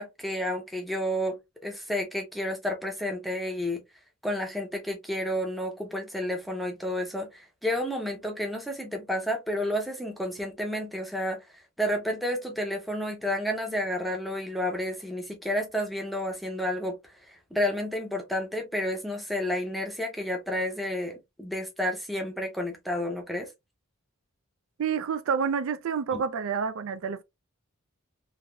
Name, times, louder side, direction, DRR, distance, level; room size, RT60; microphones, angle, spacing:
voice 1, 0.0-1.4 1.6-3.8 4.2-11.4 11.8-17.0 17.3-23.5 26.1-26.2, left 1 dB, ahead, 0.6 m, -31 dB
voice 2, 24.8-27.2, right 6 dB, 65° right, 0.3 m, -28 dB
3.4 x 2.4 x 2.2 m
head